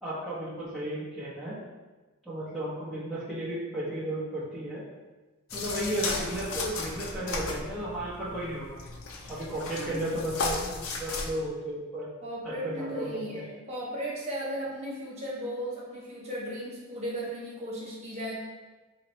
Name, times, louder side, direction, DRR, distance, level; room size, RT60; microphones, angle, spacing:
voice 1, 0.0-1.6 2.2-4.8 5.5-8.8 9.3-12.1 12.4-13.4, right 1 dB, ahead, -9 dB, 1.0 m, -34 dB
sound 1, 5.5-11.3, left 3 dB, 75° left, 0.6 m, -35 dB
voice 2, 9.8-10.1 12.2-18.4, equal, 30° right, -6 dB, 1.3 m, -36 dB
4.0 x 3.0 x 3.2 m, 1.2 s
head